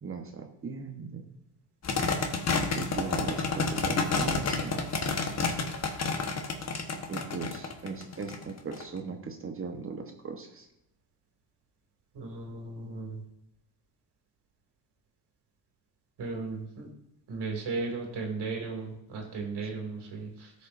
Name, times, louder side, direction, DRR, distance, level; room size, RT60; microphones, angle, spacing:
voice 1, 0.0-1.3 2.7-4.8 7.1-10.7, right 4 dB, 30° right, 5 dB, 1.0 m, -38 dB
sound 1, 1.8-8.8, left 4 dB, 35° left, 1.2 m, -29 dB
voice 2, 12.1-13.2 16.2-16.9 17.3-20.5, right 3 dB, 60° right, 1 dB, 2.4 m, -36 dB
13.5 x 5.4 x 2.5 m, 0.82 s
supercardioid pair, 85°, 46 cm